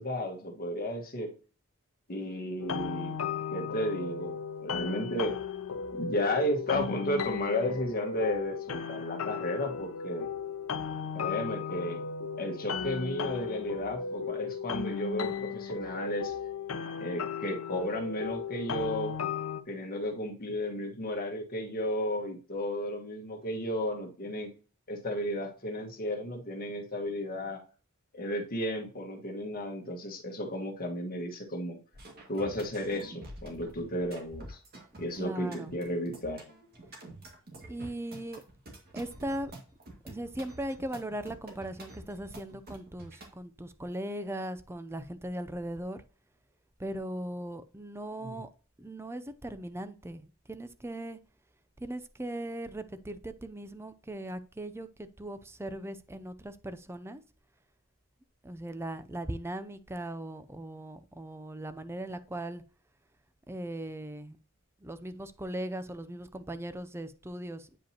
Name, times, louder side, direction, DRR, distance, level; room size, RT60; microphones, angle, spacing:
voice 1, 0.0-1.3 2.1-3.1 3.5-4.4 4.6-5.3 5.9-10.3 11.1-12.0 12.4-16.3 17.0-19.1 19.7-24.5 24.9-27.6 28.1-31.8 32.3-34.6 35.0-36.4 48.2-48.4, left 1 dB, 45° left, 1.5 m, -33 dB
sound 1, 2.6-19.6, left 6 dB, 85° left, 0.6 m, -35 dB
sound 2, 31.9-43.3, right 1 dB, 50° right, 2.1 m, -48 dB
voice 2, 35.2-35.7 37.7-38.4 38.9-39.5 40.0-46.0 46.8-48.5 48.8-51.2 51.8-57.2 58.4-62.6 63.5-64.4 64.8-67.8, right 1 dB, 10° right, 0.5 m, -39 dB
8.8 x 5.1 x 2.9 m
head